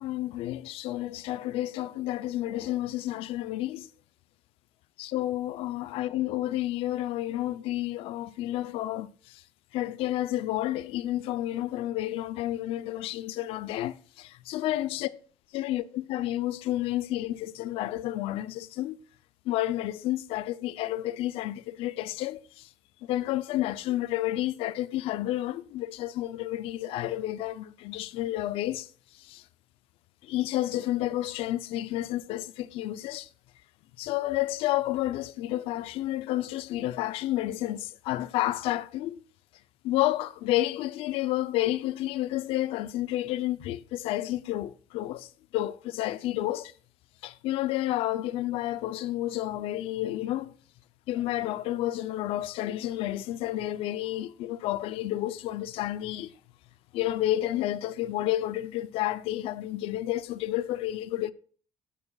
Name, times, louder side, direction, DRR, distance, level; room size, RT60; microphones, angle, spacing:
voice 1, 0.0-3.9 5.0-9.4 9.7-15.1 15.5-19.0 19.5-22.7 23.1-28.9 29.3-29.4 30.2-33.3 34.0-39.2 39.8-45.3 45.5-46.7 47.2-50.5 51.1-56.3 56.9-61.3, left 14 dB, 75° left, 0.5 m, -30 dB
11.5 x 10.0 x 2.3 m
cardioid pair, 140°, 10 cm